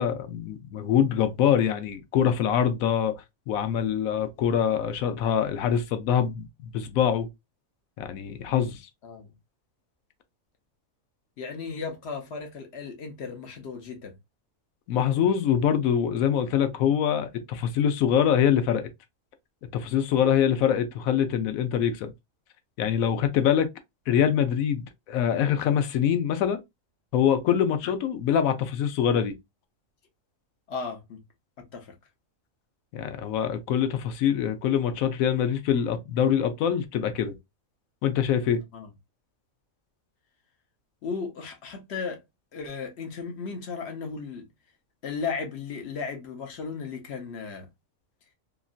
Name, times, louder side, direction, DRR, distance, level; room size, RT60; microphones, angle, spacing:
voice 1, 0.0-3.1 3.5-7.3 8.0-8.8 14.9-18.9 19.7-22.1 22.8-23.7 24.1-26.6 27.1-29.3 32.9-37.3 38.0-38.6, left 9 dB, 90° left, 1.0 m, -24 dB
voice 2, 9.0-9.3 11.4-14.1 27.8-28.0 30.7-31.2 31.6-31.9 38.7-38.9 41.0-42.2 42.5-44.5 45.0-47.7, left 5 dB, 55° left, 1.0 m, -35 dB
2.9 x 2.6 x 2.3 m
omnidirectional pair, 1.4 m